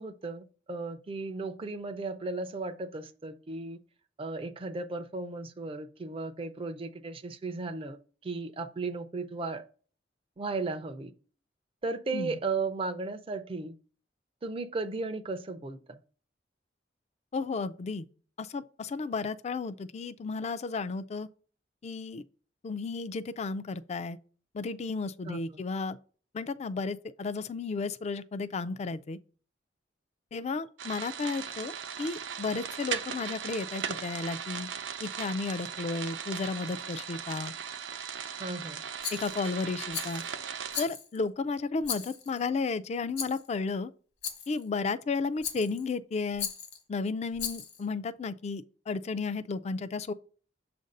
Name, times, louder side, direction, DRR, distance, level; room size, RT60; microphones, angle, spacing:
voice 1, 0.0-3.8 4.2-8.0 8.2-9.6 10.4-11.1 11.8-13.7 14.4-15.8 25.2-25.4 38.4-38.8, right 3 dB, 30° right, 0.4 m, -35 dB
voice 2, 17.3-18.1 18.4-21.3 21.8-22.2 22.6-24.2 24.5-26.0 26.3-29.2 30.3-34.7 35.0-37.5 39.1-40.2 40.8-43.9 44.5-46.5 46.9-50.1, left 4 dB, 35° left, 0.3 m, -33 dB
sound 1, 30.8-40.9, right 7 dB, 85° right, 0.6 m, -38 dB
Rattle, 39.0-39.5 39.9-40.3 40.7-41.2 41.8-42.4 43.2-43.5 44.2-44.6 45.4-45.9 46.4-46.8 47.4-47.8, left 7 dB, 60° left, 1.1 m, -37 dB
6.9 x 2.6 x 5.3 m
head